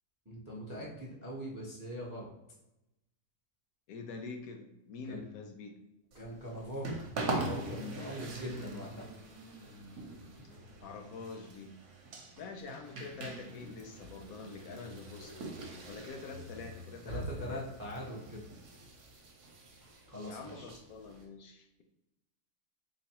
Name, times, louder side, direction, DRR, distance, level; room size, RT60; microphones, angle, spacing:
voice 1, 0.3-2.3 5.0-5.2 6.1-7.0 7.2-9.1 17.0-18.4 20.1-20.7, equal, 20° right, -4 dB, 0.5 m, -42 dB
voice 2, 3.9-5.8 10.8-11.8 12.4-15.4 15.8-17.7 20.3-21.8, left 4 dB, 75° left, 4 dB, 1.0 m, -46 dB
sound 1, 6.1-21.2, right 2 dB, 55° right, 1.0 m, -43 dB
3.8 x 3.1 x 2.9 m, 0.91 s
omnidirectional pair, 1.6 m